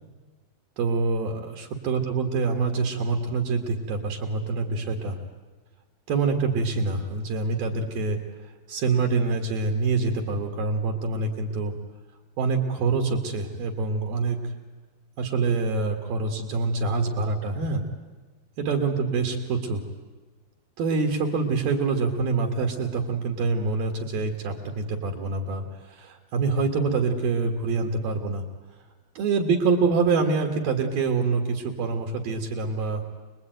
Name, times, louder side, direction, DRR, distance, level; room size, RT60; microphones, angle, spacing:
voice 1, 0.8-5.2 6.1-11.7 12.4-14.5 15.2-17.8 18.6-19.8 20.8-28.4 29.1-33.0, right 4 dB, 60° right, 2 dB, 3.2 m, -26 dB
27.0 x 21.5 x 9.2 m, 1.3 s
omnidirectional pair, 5.4 m